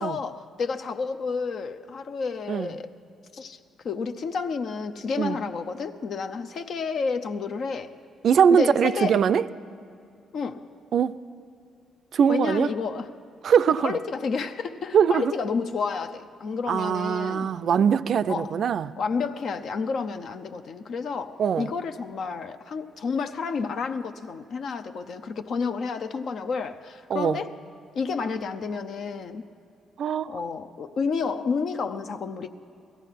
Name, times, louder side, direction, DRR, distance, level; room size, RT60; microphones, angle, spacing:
voice 1, 0.0-2.9 3.3-3.6 3.8-7.9 8.5-9.3 10.3-10.7 12.3-13.1 13.8-17.5 18.3-18.6 19.0-27.5 27.9-29.4 30.3-32.5, left 5 dB, 60° left, 0.5 m, -30 dB
voice 2, 8.2-9.4 10.9-11.2 12.1-12.7 13.4-14.0 14.9-15.3 16.7-18.9 21.4-21.7 27.1-27.4 30.0-30.3, right 7 dB, 60° right, 0.4 m, -22 dB
17.5 x 13.5 x 5.7 m
cardioid pair, 90°, 0 cm